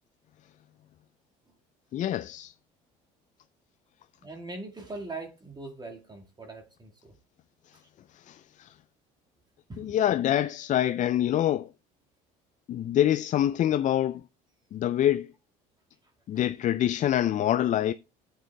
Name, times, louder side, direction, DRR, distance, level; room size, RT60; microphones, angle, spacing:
voice 1, 1.9-2.5 7.7-7.8 8.1-8.8 9.8-11.7 12.7-14.2 14.7-15.3 16.3-17.9, left 11 dB, 45° left, 0.4 m, -26 dB
voice 2, 4.2-7.1 7.7-7.9 9.7-10.0 16.3-16.4, right 2 dB, 25° right, 1.7 m, -41 dB
14.5 x 8.5 x 2.2 m
hypercardioid pair, 75°, 18 cm